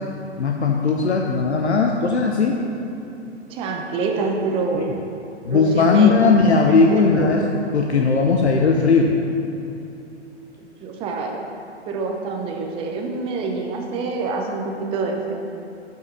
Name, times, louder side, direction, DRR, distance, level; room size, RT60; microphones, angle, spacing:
voice 1, 0.4-2.6 4.7-4.8 5.5-7.4 7.7-9.1, left 4 dB, 70° left, 1 dB, 0.8 m, -17 dB
voice 2, 3.5-5.0 5.5-7.3 10.8-11.4 11.9-15.3, right 3 dB, 15° right, 2 dB, 0.6 m, -26 dB
7.9 x 5.7 x 5.5 m, 2.7 s
figure-of-eight pair, 115°, 34 cm